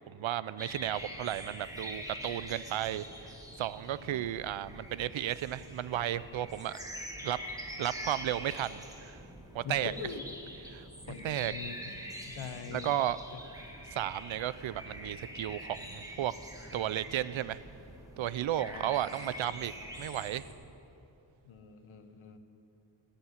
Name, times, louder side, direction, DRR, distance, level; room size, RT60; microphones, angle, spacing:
voice 1, 0.1-6.8 7.2-7.4 7.8-9.2 9.5-9.9 10.7-10.9 11.2-11.5 12.7-13.2 13.9-16.3 16.7-17.6 18.2-19.7 20.0-20.4, right 12 dB, 80° right, 17 dB, 0.6 m, -34 dB
sound 1, 0.6-20.5, equal, 5° right, 1.8 m, -45 dB
voice 2, 3.9-4.2 9.6-10.2 11.1-11.8 12.2-12.9 18.6-18.8 21.4-22.4, left 6 dB, 90° left, 9 dB, 1.1 m, -43 dB
16.0 x 7.1 x 9.6 m, 2.9 s
wide cardioid pair, 115°, 47 cm